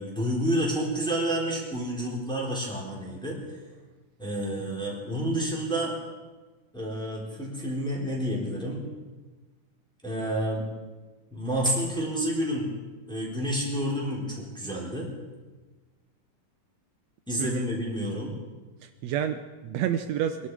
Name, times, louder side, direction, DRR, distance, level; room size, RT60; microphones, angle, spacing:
voice 1, 0.0-3.6 4.2-5.9 6.7-8.8 10.0-10.7 11.3-12.8 13.1-15.1 17.3-18.3, equal, ahead, -4 dB, 3.4 m, -29 dB
voice 2, 18.8-20.5, right 9 dB, 90° right, 8 dB, 1.5 m, -29 dB
23.5 x 12.0 x 4.8 m, 1.3 s
omnidirectional pair, 3.9 m